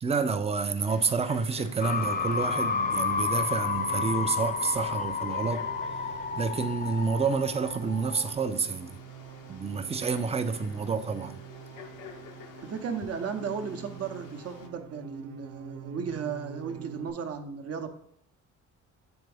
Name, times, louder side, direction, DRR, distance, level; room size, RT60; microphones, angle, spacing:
voice 1, 0.0-5.7 6.4-9.0 9.5-11.4, right 5 dB, 20° right, 0.4 m, -29 dB
Frog, 0.7-14.7, left 7 dB, 90° left, 0.6 m, -50 dB
sound 1, 0.8-17.1, right 11 dB, 80° right, 0.5 m, -47 dB
sound 2, 1.8-8.3, left 5 dB, 30° left, 0.6 m, -31 dB
voice 2, 12.6-17.9, right 6 dB, 55° right, 0.8 m, -35 dB
8.0 x 3.5 x 3.3 m
cardioid pair, 90°, 30 cm